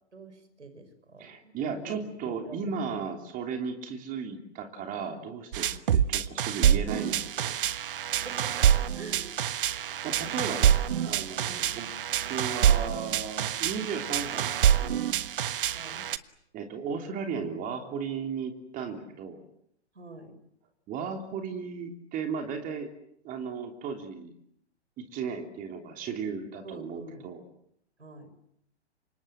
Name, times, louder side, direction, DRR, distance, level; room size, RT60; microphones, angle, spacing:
voice 1, 0.1-2.6 2.9-3.1 7.5-7.7 8.2-9.4 11.4-11.8 15.7-16.1 19.9-20.4 26.6-27.3 28.0-28.3, right 2 dB, 80° right, 9 dB, 6.0 m, -46 dB
voice 2, 1.2-7.6 9.7-11.9 12.3-15.0 16.5-19.4 20.9-22.9 23.2-24.3 25.0-27.4, right 6 dB, 25° right, 4 dB, 3.2 m, -35 dB
sound 1, 5.5-16.2, right 9 dB, 50° right, 1.4 m, -26 dB
29.0 x 26.5 x 7.6 m, 0.74 s
figure-of-eight pair, 120°, 35 cm